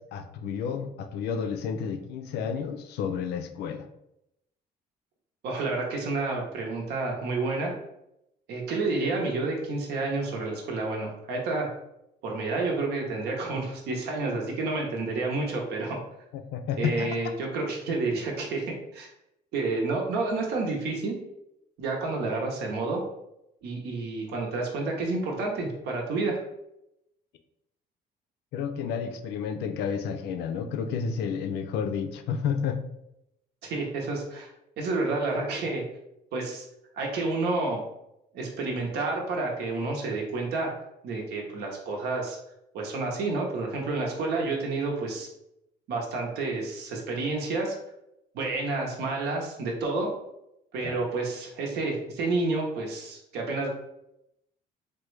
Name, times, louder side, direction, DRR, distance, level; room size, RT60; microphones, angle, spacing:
voice 1, 0.0-3.9 16.5-17.2 28.5-32.8 50.8-51.0, left 6 dB, 75° left, 7 dB, 0.4 m, -31 dB
voice 2, 5.4-7.7 8.5-11.7 12.2-16.0 16.8-18.6 18.9-19.1 19.5-21.2 21.8-23.0 23.6-26.4 33.6-34.5 34.8-35.8 36.3-36.6 36.9-37.8 38.3-40.7 41.0-42.4 42.7-45.3 45.9-47.7 48.3-50.1 50.7-53.7, right 3 dB, 75° right, 0 dB, 0.8 m, -29 dB
3.3 x 2.2 x 3.1 m, 0.83 s
cardioid pair, 110°, 17 cm